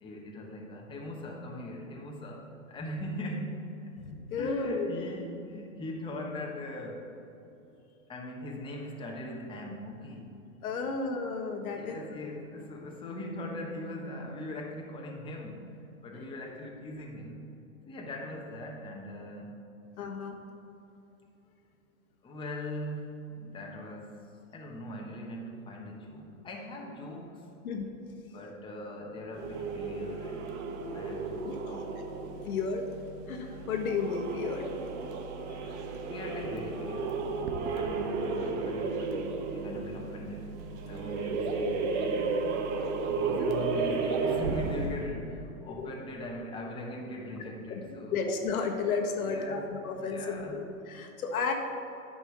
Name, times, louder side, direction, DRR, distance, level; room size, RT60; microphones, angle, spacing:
voice 1, 0.0-3.6 4.4-7.1 8.1-10.3 10.8-11.0 11.7-17.5 17.9-19.5 22.2-24.2 24.5-27.5 28.3-32.0 36.0-37.3 37.7-40.5 40.8-42.6 43.1-48.1 49.2-49.6 50.0-50.6, left 1 dB, 10° left, -1 dB, 1.1 m, -40 dB
voice 2, 4.0-4.9 10.6-12.2 16.1-16.3 20.0-20.4 27.6-27.9 31.4-31.5 32.4-32.9 33.3-34.7 35.6-35.8 38.3-38.5 43.2-43.4 45.7-45.9 47.7-47.8 48.1-51.5, left 4 dB, 80° left, 3 dB, 1.5 m, -33 dB
sound 1, 29.3-45.0, right 4 dB, 55° right, 1.2 m, -33 dB
9.9 x 5.5 x 6.2 m, 2.9 s
hypercardioid pair, 135°, 42 cm